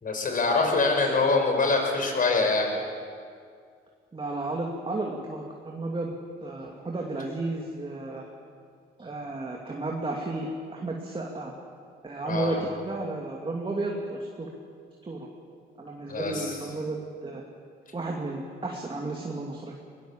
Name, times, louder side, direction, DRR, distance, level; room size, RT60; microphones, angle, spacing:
voice 1, 0.0-2.7 12.2-12.6 16.1-16.5, left 3 dB, 45° left, 3 dB, 5.1 m, -24 dB
voice 2, 0.6-1.3 4.1-6.1 6.4-8.3 9.0-11.5 12.0-14.5 15.0-15.3 15.8-17.4 17.9-19.8, right 2 dB, 25° right, -1 dB, 2.6 m, -33 dB
22.0 x 18.5 x 7.4 m, 2.1 s
cardioid pair, 90°, 20 cm